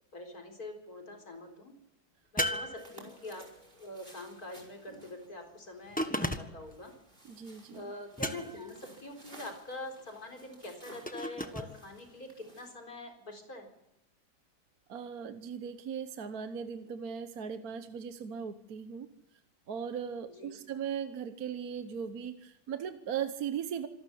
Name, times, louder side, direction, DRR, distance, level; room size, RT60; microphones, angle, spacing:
voice 1, 0.1-1.7 2.3-3.5 3.8-6.9 7.7-13.7 20.4-20.6, left 2 dB, 50° left, 4 dB, 4.7 m, -44 dB
sound 1, 2.4-3.5 6.0-6.7 8.2-8.8 11.1-11.7, equal, 5° left, 1.2 m, -34 dB
sound 2, 2.8-12.7, right 1 dB, 25° right, 5.2 m, -56 dB
voice 2, 7.2-7.9 14.9-19.1 19.7-23.9, right 7 dB, 55° right, 9 dB, 1.4 m, -38 dB
26.5 x 13.0 x 10.0 m, 0.90 s
omnidirectional pair, 2.0 m